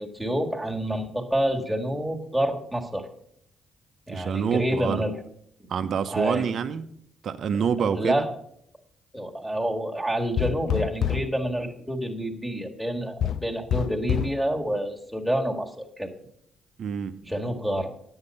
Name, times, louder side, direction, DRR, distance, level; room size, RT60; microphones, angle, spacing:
voice 1, 0.0-3.1 4.1-5.2 6.1-6.5 7.5-8.3 9.1-16.1 17.3-17.9, right 1 dB, ahead, 1.7 m, -28 dB
voice 2, 4.1-5.1 5.7-6.9 7.2-8.3 16.8-17.1, right 7 dB, 60° right, 0.8 m, -27 dB
sound 1, 10.4-11.4 13.2-14.4, left 10 dB, 70° left, 0.3 m, -27 dB
9.9 x 8.1 x 5.3 m
cardioid pair, 90°, 0 cm